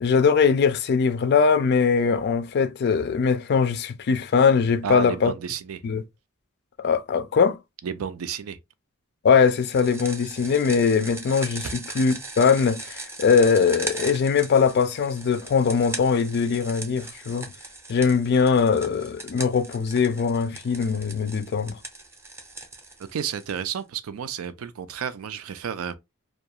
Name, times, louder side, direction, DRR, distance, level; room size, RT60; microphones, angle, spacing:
voice 1, 0.0-5.3 5.8-6.0 6.8-7.6 9.2-17.5 17.9-21.8, left 5 dB, 55° left, 0.3 m, -21 dB
voice 2, 4.8-5.8 7.8-8.6 23.1-26.0, right 7 dB, 85° right, 0.4 m, -31 dB
sound 1, 9.5-23.8, right 2 dB, 15° right, 0.5 m, -39 dB
2.3 x 2.2 x 2.7 m
head